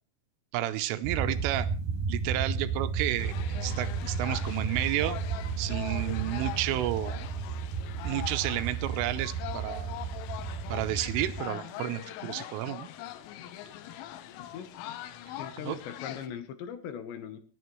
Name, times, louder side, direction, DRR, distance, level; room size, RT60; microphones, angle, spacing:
voice 1, 0.5-1.7 2.1-3.3 3.6-5.2 5.6-7.2 8.0-9.9 10.7-12.9 15.6-15.8, right 14 dB, 80° right, 10 dB, 3.4 m, -31 dB
sound 1, 1.0-11.4, right 5 dB, 55° right, 4.1 m, -33 dB
sound 2, 3.2-16.3, left 12 dB, 85° left, 3.6 m, -42 dB
voice 2, 14.4-14.8 15.4-17.4, left 8 dB, 70° left, 9 dB, 3.1 m, -40 dB
30.0 x 10.5 x 3.1 m, 0.37 s
omnidirectional pair, 5.7 m